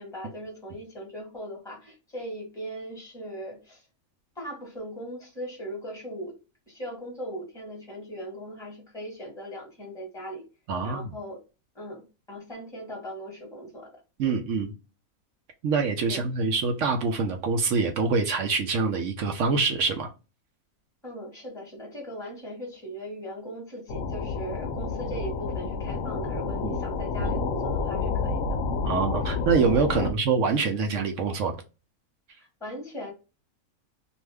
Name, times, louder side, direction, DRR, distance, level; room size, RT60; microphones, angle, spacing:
voice 1, 0.0-3.8 4.4-6.3 6.7-10.4 10.8-11.4 11.7-12.0 12.3-14.0 14.2-14.4 16.1-16.2 21.0-28.4 28.7-28.9 29.9-30.1 32.4-33.1, equal, ahead, 1.2 m, -39 dB
voice 2, 10.7-11.1 14.2-14.7 15.6-20.1 26.6-26.8 28.8-31.6, right 4 dB, 65° right, 0.9 m, -25 dB
sound 1, 23.9-30.1, left 4 dB, 70° left, 0.8 m, -29 dB
2.7 x 2.4 x 3.2 m
omnidirectional pair, 1.5 m